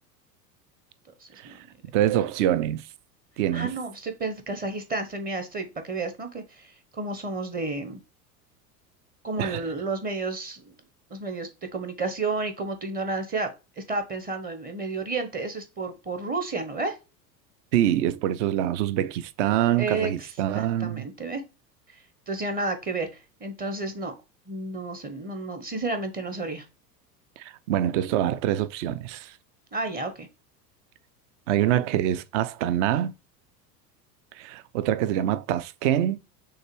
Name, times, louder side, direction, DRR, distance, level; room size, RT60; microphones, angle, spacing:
voice 1, 1.2-1.6 3.5-8.0 9.2-10.7 11.1-17.0 19.8-20.3 20.5-21.4 22.3-24.1 24.5-26.6 29.7-30.3, right 3 dB, 20° right, 0.8 m, -31 dB
voice 2, 1.9-2.8 3.4-3.7 9.4-9.6 17.7-21.1 27.4-29.4 31.5-33.1 34.3-36.2, right 11 dB, 50° right, 0.4 m, -25 dB
6.4 x 2.3 x 3.0 m
figure-of-eight pair, 80°, 50 cm